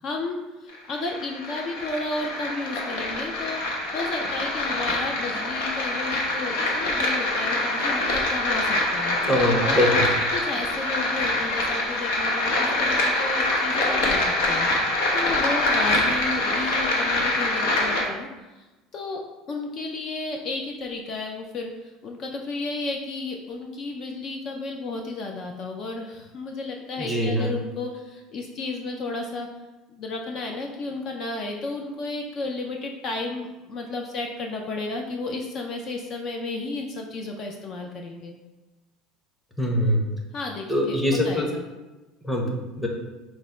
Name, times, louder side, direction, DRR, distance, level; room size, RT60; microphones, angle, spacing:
voice 1, 0.0-3.6 3.9-9.2 9.6-9.9 10.3-14.7 15.1-18.3 18.6-18.7 18.9-19.2 19.5-29.5 29.9-38.3 40.3-41.0 41.2-41.6, left 3 dB, 45° left, 2 dB, 0.4 m, -33 dB
sound 1, 0.7-18.0, left 2 dB, 85° left, 0.8 m, -25 dB
voice 2, 9.3-10.1 27.0-27.5 39.6-40.0 40.7-41.5 42.2-42.9, equal, 5° left, -1 dB, 0.7 m, -23 dB
4.8 x 2.1 x 4.2 m, 1.1 s
cardioid pair, 140°, 0 cm